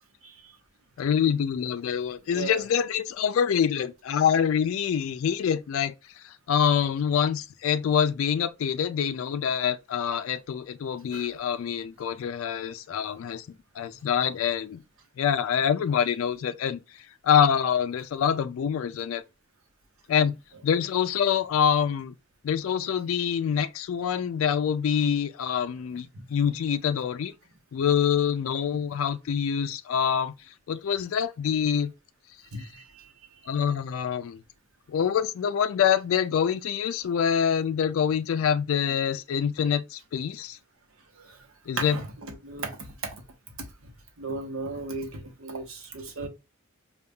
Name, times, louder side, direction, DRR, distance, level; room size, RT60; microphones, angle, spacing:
voice 1, 1.0-13.5 13.8-14.8 15.2-16.8 17.2-19.2 20.1-20.4 20.6-22.1 22.4-27.3 27.7-30.3 30.7-31.9 32.6-32.7 33.5-34.4 34.9-40.6 41.7-42.0, left 8 dB, 80° left, 0.3 m, -25 dB
voice 2, 2.3-2.6 11.1-11.3 28.6-28.8 32.5-32.8 41.2-41.4 41.8-42.8 43.0-43.2 44.2-46.3, right 3 dB, 90° right, 0.9 m, -35 dB
5.2 x 2.3 x 2.3 m
head